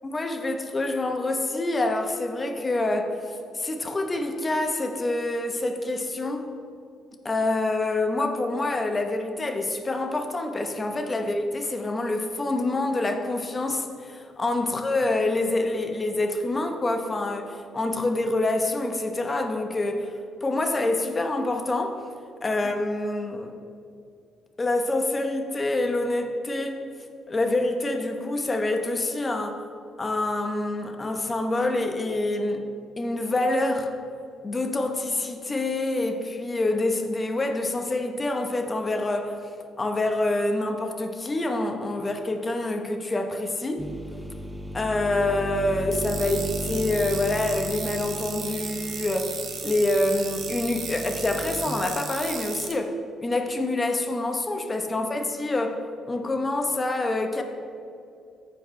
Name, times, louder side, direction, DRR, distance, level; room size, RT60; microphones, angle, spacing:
voice 1, 0.0-3.1 3.5-6.5 7.2-20.1 20.4-22.0 22.4-23.5 24.6-26.8 27.3-29.6 30.0-32.6 33.0-33.9 34.4-39.4 39.8-43.9 44.7-49.4 49.6-53.0 53.2-57.4, left 2 dB, 25° left, 5 dB, 0.9 m, -26 dB
sound 1, 43.8-51.7, left 1 dB, 5° right, 0.5 m, -36 dB
sound 2, 45.9-52.7, right 6 dB, 65° right, 1.0 m, -35 dB
14.0 x 4.8 x 3.2 m, 2.5 s
cardioid pair, 90°, 0 cm